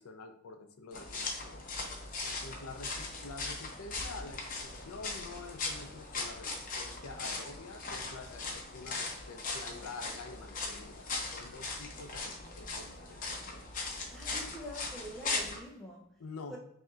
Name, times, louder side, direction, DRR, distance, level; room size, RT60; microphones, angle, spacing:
voice 1, 0.0-1.7 2.2-13.3 16.2-16.6, left 3 dB, 80° left, 6 dB, 0.6 m, -47 dB
sound 1, 0.9-15.6, left 3 dB, 40° left, 0.7 m, -39 dB
voice 2, 14.1-16.1 16.5-16.6, equal, ahead, -4 dB, 0.5 m, -45 dB
5.5 x 2.8 x 2.4 m, 0.77 s
head